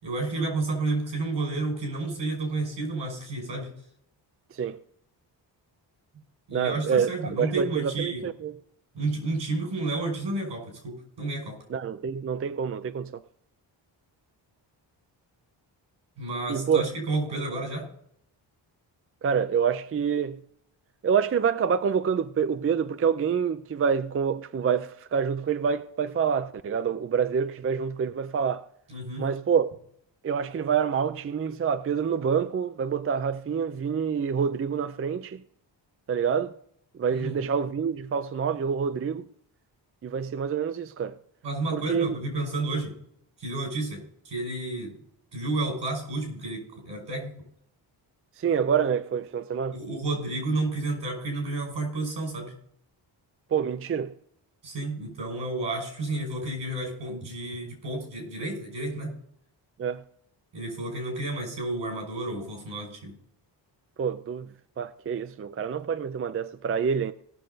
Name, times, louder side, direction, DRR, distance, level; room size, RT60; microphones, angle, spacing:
voice 1, 0.0-3.7 6.5-8.3 8.9-11.6 16.2-17.9 28.9-29.3 37.1-37.4 41.4-42.9 43.4-45.0 45.3-47.4 49.7-52.5 54.6-59.1 60.5-63.2, right 2 dB, 80° right, 5.5 m, -31 dB
voice 2, 6.5-8.5 11.7-13.2 16.5-16.8 19.2-20.4 21.0-28.7 29.2-29.7 30.2-35.4 36.1-36.5 37.0-39.3 40.0-41.1 41.7-42.2 48.4-49.8 53.5-54.1 59.8-60.0 64.0-64.5 64.8-67.1, right 7 dB, 30° right, 0.5 m, -27 dB
18.0 x 6.4 x 3.9 m
cardioid pair, 95°, 43 cm